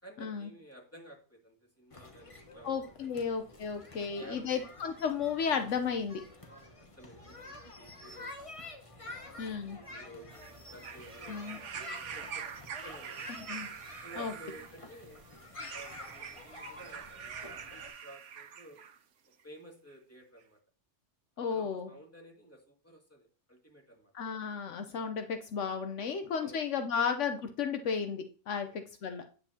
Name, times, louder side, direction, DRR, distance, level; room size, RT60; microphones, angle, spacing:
voice 1, 0.0-3.3 4.0-4.6 6.4-8.3 8.9-12.4 12.8-13.3 14.0-15.2 15.7-18.8 19.4-20.6 21.4-24.1 26.0-26.6 28.5-28.8, right 1 dB, 10° left, 0 dB, 2.3 m, -53 dB
sound 1, 1.9-17.9, left 2 dB, 30° left, 1.1 m, -49 dB
voice 2, 2.6-6.2 9.4-9.8 11.3-11.6 13.5-13.7 14.2-14.3 21.4-21.9 24.1-29.2, left 6 dB, 75° left, 6 dB, 1.1 m, -34 dB
sound 2, 10.3-19.0 19.9-20.0, right 7 dB, 75° right, 1.1 m, -45 dB
9.3 x 8.0 x 2.8 m, 0.39 s
omnidirectional pair, 1.3 m